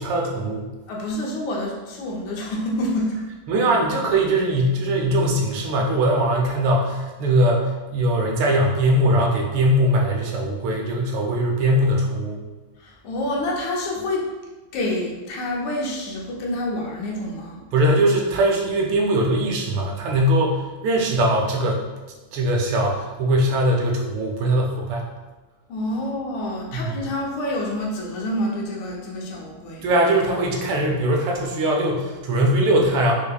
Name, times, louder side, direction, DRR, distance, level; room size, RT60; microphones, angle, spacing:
voice 1, 0.0-0.7 3.5-12.4 17.7-21.8 22.3-25.0 26.7-26.9 29.8-33.1, right 1 dB, 90° right, 0 dB, 1.6 m, -21 dB
voice 2, 0.9-3.2 12.8-14.3 14.7-17.6 25.7-29.9, left 1 dB, 85° left, -2 dB, 1.6 m, -27 dB
4.7 x 2.6 x 2.3 m, 1.2 s
omnidirectional pair, 2.3 m